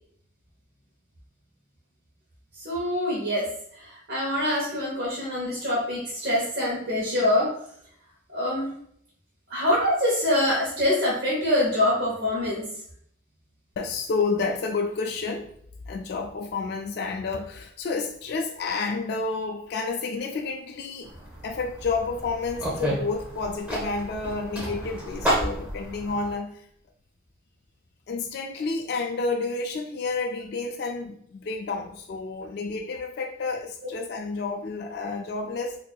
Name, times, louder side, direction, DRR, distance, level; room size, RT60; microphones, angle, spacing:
voice 1, 2.5-7.5 8.3-8.7 9.5-12.7, left 1 dB, 55° right, -6 dB, 1.0 m, -25 dB
voice 2, 13.8-15.5 15.9-21.1 21.4-26.7 28.1-35.8, left 4 dB, 55° left, 2 dB, 0.3 m, -30 dB
sound 1, 21.0-26.3, equal, 5° right, 0.8 m, -31 dB
4.4 x 2.6 x 2.3 m, 0.66 s
head